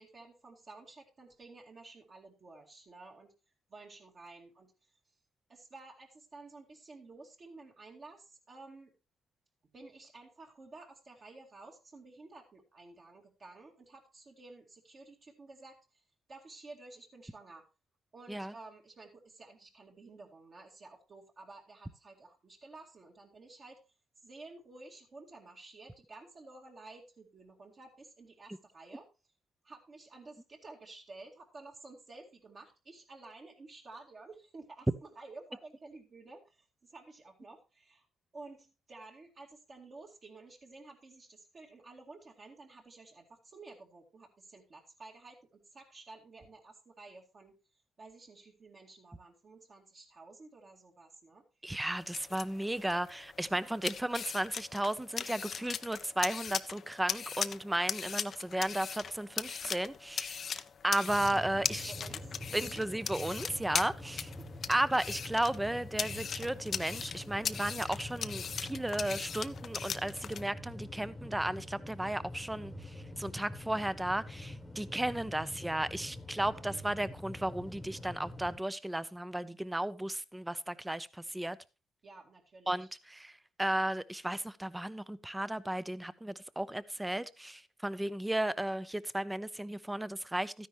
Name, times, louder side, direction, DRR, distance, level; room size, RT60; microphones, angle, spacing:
voice 1, 0.0-3.3 3.7-4.7 5.5-8.9 9.7-16.0 16.3-17.7 18.1-23.8 24.2-29.1 29.6-34.9 35.2-38.1 38.3-47.6 48.0-51.4 53.5-53.8 61.3-62.8 64.0-64.6 76.3-76.7 82.0-82.9, right 3 dB, 45° right, 0 dB, 2.2 m, -53 dB
voice 2, 51.6-61.9 62.5-64.3 64.7-81.6 82.7-90.7, right 1 dB, 10° right, 17 dB, 0.7 m, -34 dB
sound 1, 51.9-70.4, left 7 dB, 50° left, 0.6 m, -39 dB
sound 2, 61.1-78.6, left 1 dB, 10° left, 1.2 m, -46 dB
12.5 x 10.0 x 3.1 m, 0.30 s
cardioid pair, 90°, 0 cm